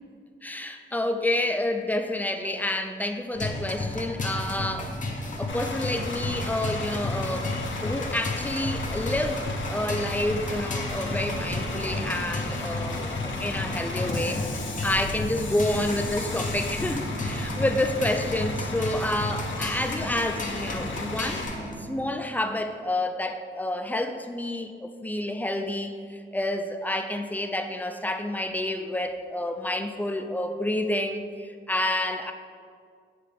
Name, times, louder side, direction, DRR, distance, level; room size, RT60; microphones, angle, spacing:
voice 1, 0.4-4.9 5.4-7.5 7.8-21.4 21.8-26.0 26.3-32.3, left 1 dB, 10° left, 6 dB, 0.4 m, -29 dB
sound 1, 3.3-21.7, left 2 dB, 40° left, 0.7 m, -33 dB
Bus / Idling, 5.5-21.5, left 3 dB, 70° left, 0.7 m, -35 dB
sound 2, 11.0-22.1, right 2 dB, 85° right, 0.7 m, -41 dB
7.6 x 3.7 x 3.4 m, 2.1 s
wide cardioid pair, 90°, 21 cm